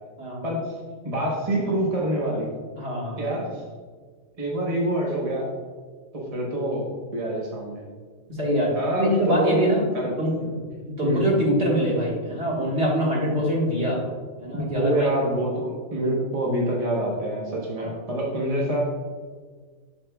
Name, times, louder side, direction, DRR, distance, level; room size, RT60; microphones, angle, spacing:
voice 1, 0.4-0.8 1.0-2.5 3.2-3.6 4.4-5.5 6.1-7.9 8.7-9.6 9.9-10.6 11.0-11.3 14.5-18.8, right 1 dB, 30° right, -3 dB, 0.9 m, -26 dB
voice 2, 2.8-3.4 8.4-9.8 10.2-10.3 11.0-14.0 14.4-15.1 17.8-18.0, equal, 50° right, -4 dB, 1.8 m, -24 dB
7.3 x 6.2 x 2.3 m, 1.5 s
omnidirectional pair, 1.4 m